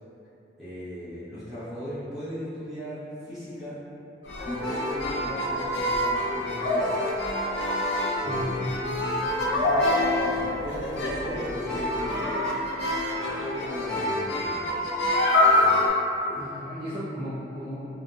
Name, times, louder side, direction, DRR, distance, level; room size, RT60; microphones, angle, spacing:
voice 1, 0.6-3.8 4.4-7.0 8.2-8.8 9.2-12.6 13.1-15.0 15.5-15.8 16.2-16.5, equal, ahead, -16 dB, 0.9 m, -37 dB
sound 1, 4.2-15.9, left 1 dB, 80° left, 0.4 m, -26 dB
voice 2, 8.3-8.6 8.8-9.0 16.4-17.9, equal, 30° right, -13 dB, 0.4 m, -35 dB
2.7 x 2.1 x 2.3 m, 2.8 s
head